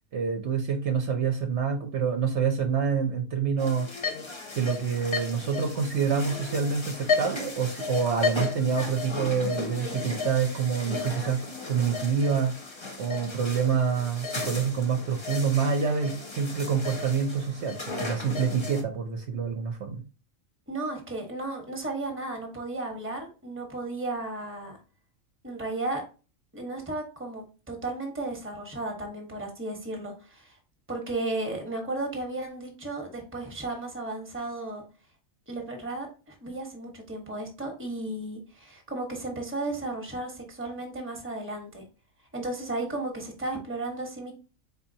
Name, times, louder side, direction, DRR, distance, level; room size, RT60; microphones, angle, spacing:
voice 1, 0.1-3.9 4.5-11.4 11.7-12.5 13.0-20.0, right 6 dB, 60° right, 4 dB, 1.0 m, -27 dB
sound 1, 3.6-18.8, left 4 dB, 25° left, 0.7 m, -34 dB
voice 2, 20.7-24.8 25.4-26.0 26.5-30.5 30.9-34.8 35.5-41.8 42.3-44.3, right 2 dB, 10° right, 3 dB, 1.1 m, -34 dB
4.2 x 4.0 x 2.7 m, 0.33 s
omnidirectional pair, 1.4 m